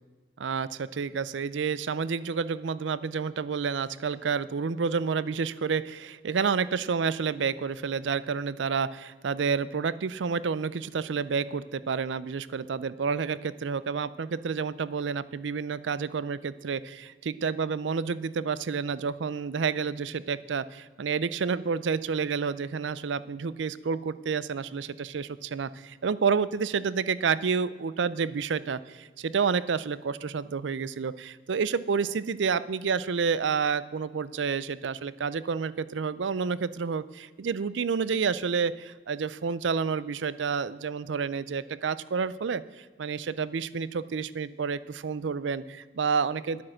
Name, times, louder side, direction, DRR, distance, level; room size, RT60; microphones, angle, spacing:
voice 1, 0.4-46.6, right 5 dB, 90° right, 17 dB, 0.5 m, -29 dB
11.5 x 8.6 x 6.4 m, 1.4 s
head